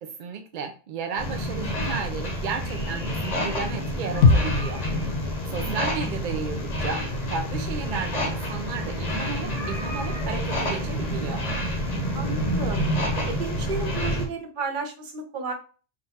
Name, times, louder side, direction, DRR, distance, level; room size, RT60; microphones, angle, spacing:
voice 1, 0.0-4.8 5.1-11.5, right 5 dB, 65° right, 5 dB, 0.5 m, -34 dB
sound 1, 1.2-14.3, equal, 35° left, 0.9 m, -28 dB
sound 2, 4.2-8.2 8.5-8.6, left 4 dB, 65° left, 0.8 m, -25 dB
voice 2, 12.1-12.8 13.2-15.5, right 4 dB, 45° right, 5 dB, 0.8 m, -33 dB
3.8 x 2.4 x 4.1 m, 0.36 s
omnidirectional pair, 1.3 m